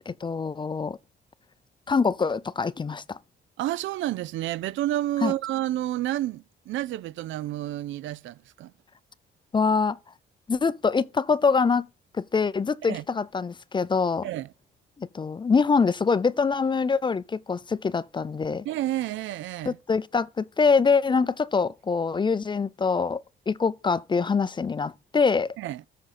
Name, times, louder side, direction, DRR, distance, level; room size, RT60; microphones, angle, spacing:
voice 1, 0.2-1.0 1.9-3.2 5.2-5.3 9.5-10.0 10.5-11.9 12.2-14.3 15.0-18.6 19.7-23.2 23.5-25.5, left 5 dB, 25° left, 0.4 m, -24 dB
voice 2, 3.6-8.7 12.8-13.0 14.2-14.5 18.6-19.8 25.6-25.8, right 14 dB, 75° right, 0.4 m, -30 dB
13.5 x 5.0 x 4.2 m
cardioid pair, 90°, 20 cm